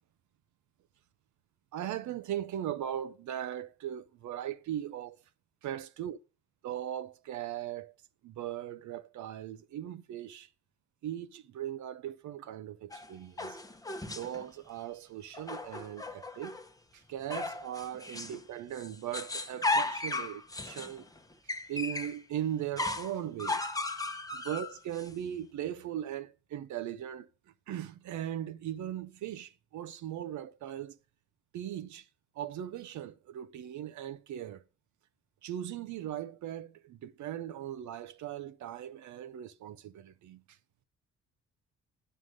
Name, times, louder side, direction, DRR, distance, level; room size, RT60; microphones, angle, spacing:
voice 1, 1.7-5.2 5.6-6.2 6.6-7.9 8.2-10.5 11.0-13.6 14.1-16.6 16.9-21.1 21.7-23.6 24.3-27.3 27.7-31.0 31.5-32.1 32.4-34.6 35.4-40.6, right 11 dB, 75° right, 0.8 m, -39 dB
sound 1, 12.9-14.4 15.3-16.7 17.3-18.4 18.7-22.2 22.8-25.1, left 2 dB, 10° left, 1.0 m, -36 dB
9.4 x 5.7 x 6.3 m
cardioid pair, 90°, 30 cm